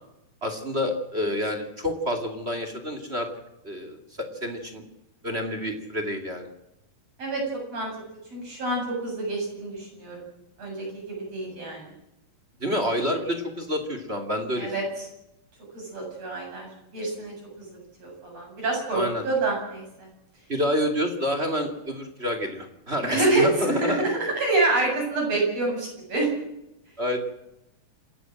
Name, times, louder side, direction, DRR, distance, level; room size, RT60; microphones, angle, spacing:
voice 1, 0.4-3.3 3.6-4.0 4.4-4.8 5.2-6.5 12.6-14.7 18.9-19.2 20.5-24.0 27.0-27.2, equal, 20° right, 6 dB, 2.1 m, -28 dB
voice 2, 8.3-10.2 10.6-11.8 14.6-14.8 15.7-16.7 16.9-17.3 17.7-20.1 23.0-26.3, right 2 dB, 40° right, -1 dB, 9.1 m, -27 dB
28.0 x 14.0 x 7.7 m, 0.89 s
omnidirectional pair, 4.2 m